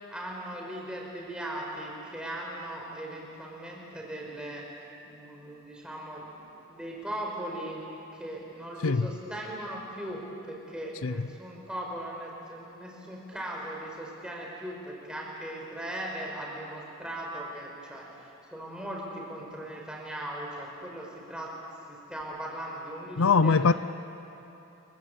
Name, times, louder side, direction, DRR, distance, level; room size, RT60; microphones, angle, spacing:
voice 1, 0.1-4.6 5.1-7.8 8.1-21.5 21.9-23.7, right 1 dB, 5° right, 5.2 m, -38 dB
voice 2, 23.2-23.7, left 4 dB, 80° left, 0.6 m, -21 dB
29.0 x 23.0 x 8.6 m
head